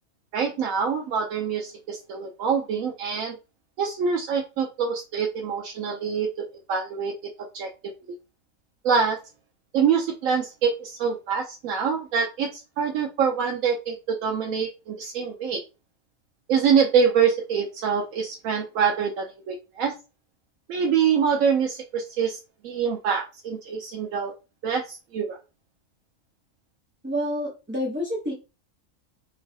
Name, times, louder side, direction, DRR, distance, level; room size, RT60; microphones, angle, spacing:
voice 1, 0.3-3.3 3.8-7.1 7.4-7.7 8.8-9.2 9.7-15.6 16.5-19.9 20.7-22.4 22.6-24.3 24.6-25.4, right 6 dB, 80° right, 0 dB, 1.0 m, -25 dB
voice 2, 27.0-28.3, equal, 10° right, -4 dB, 0.5 m, -28 dB
3.1 x 3.0 x 2.7 m, 0.29 s
omnidirectional pair, 1.4 m